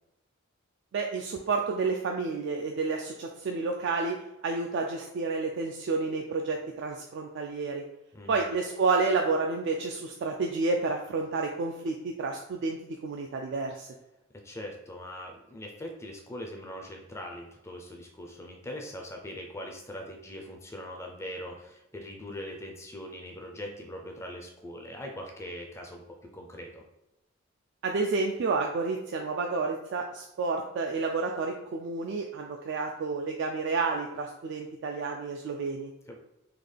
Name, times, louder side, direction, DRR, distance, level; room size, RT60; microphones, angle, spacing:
voice 1, 0.9-4.2 4.4-7.8 8.3-12.8 13.0-13.9 27.8-35.9, right 4 dB, 60° right, 2 dB, 0.3 m, -30 dB
voice 2, 8.1-8.5 14.3-26.0 26.3-26.8 36.1-36.2, left 1 dB, 15° left, 1 dB, 0.4 m, -41 dB
3.8 x 2.3 x 3.2 m, 0.89 s
head